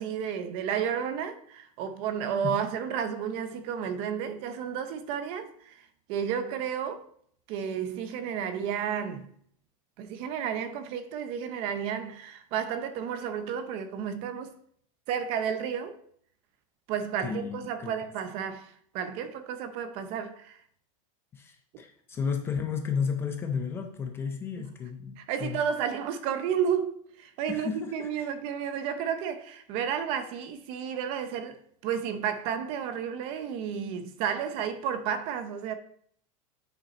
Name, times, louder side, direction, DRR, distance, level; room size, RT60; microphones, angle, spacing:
voice 1, 0.0-7.0 7.5-9.3 10.0-14.6 15.1-16.0 16.9-20.6 24.6-24.7 25.2-35.7, right 8 dB, 30° right, 0.6 m, -32 dB
voice 2, 17.2-17.9 21.3-25.6 27.5-28.3, left 6 dB, 15° left, 0.4 m, -33 dB
8.9 x 5.2 x 4.2 m
supercardioid pair, 180°, 18 cm